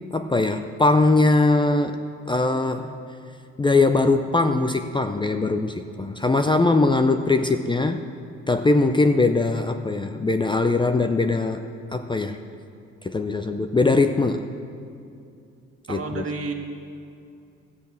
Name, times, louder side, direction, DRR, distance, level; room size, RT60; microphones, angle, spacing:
voice 1, 0.1-2.0 2.3-2.9 3.6-8.0 8.5-11.6 11.9-12.4 13.0-14.5 15.9-16.2, left 3 dB, 15° left, 7 dB, 0.5 m, -21 dB
voice 2, 15.9-16.5, right 3 dB, 50° right, 2 dB, 1.7 m, -30 dB
13.5 x 8.4 x 7.0 m, 2.5 s
cardioid pair, 90°, 30 cm